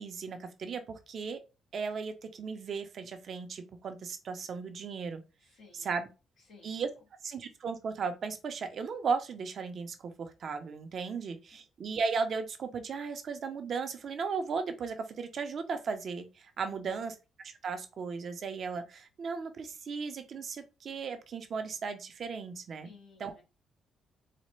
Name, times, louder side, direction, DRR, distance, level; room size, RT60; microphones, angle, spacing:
voice 1, 0.0-1.4 1.7-5.2 5.7-6.1 6.6-6.9 7.2-22.9 23.2-23.3, right 5 dB, 55° right, 0.6 m, -36 dB
voice 2, 5.4-6.0 6.4-6.8 11.5-11.6 16.7-17.1 22.8-23.4, left 4 dB, 75° left, 1.6 m, -57 dB
4.0 x 2.1 x 3.1 m
cardioid pair, 90°, 0 cm